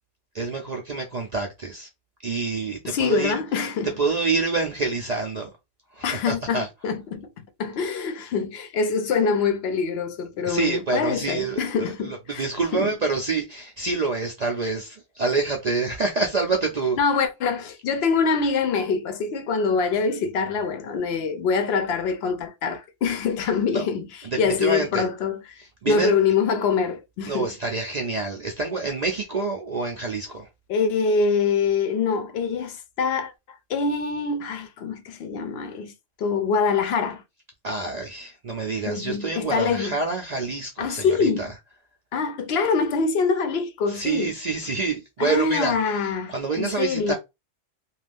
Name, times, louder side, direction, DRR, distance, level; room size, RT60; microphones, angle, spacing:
voice 1, 0.3-1.9 2.2-3.4 4.0-5.5 5.9-6.7 10.5-17.0 23.7-23.8 24.2-25.1 25.6-26.1 27.3-30.5 37.6-41.5 43.9-45.7 46.0-47.1, right 3 dB, 65° right, 0.4 m, -27 dB
voice 2, 2.8-3.9 6.0-7.3 7.6-12.4 12.7-12.9 17.0-24.0 24.4-25.4 25.9-27.5 30.7-35.9 36.2-37.2 38.9-40.0 40.8-41.5 42.1-44.3 45.2-47.1, left 5 dB, 65° left, 0.7 m, -24 dB
2.5 x 2.3 x 3.4 m
omnidirectional pair, 1.3 m